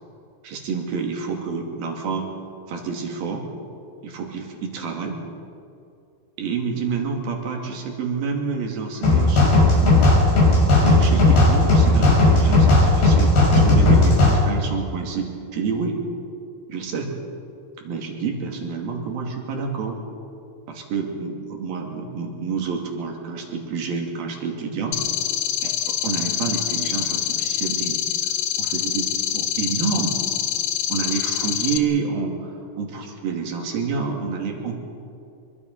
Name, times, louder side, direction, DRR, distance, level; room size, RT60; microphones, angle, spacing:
voice 1, 0.4-2.3 2.7-3.5 4.0-5.1 6.4-10.2 10.8-16.0 16.7-17.1 17.8-20.0 20.7-25.0 25.6-28.0 28.6-30.2 30.9-34.8, right 5 dB, 65° right, 2 dB, 4.4 m, -28 dB
sound 1, 9.0-14.4, left 2 dB, 75° left, 7.5 m, -15 dB
sound 2, 24.9-31.8, left 10 dB, 90° left, 1.5 m, -25 dB
25.5 x 23.0 x 5.6 m, 2.5 s
omnidirectional pair, 4.6 m